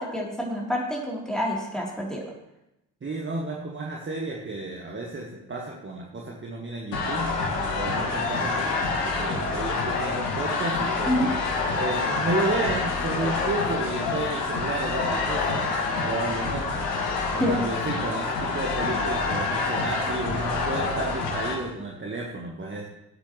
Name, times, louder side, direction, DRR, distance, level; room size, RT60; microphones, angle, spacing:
voice 1, 0.0-2.2 11.1-11.3 17.4-17.7, left 1 dB, ahead, -3 dB, 3.5 m, -27 dB
voice 2, 3.0-7.3 7.7-8.7 9.0-11.2 11.8-15.7 16.0-16.9 17.3-22.9, right 2 dB, 25° right, -1 dB, 1.7 m, -32 dB
sound 1, 6.9-21.6, left 3 dB, 75° left, 1.5 m, -27 dB
18.5 x 8.3 x 3.2 m, 0.88 s
figure-of-eight pair, 50°, 48 cm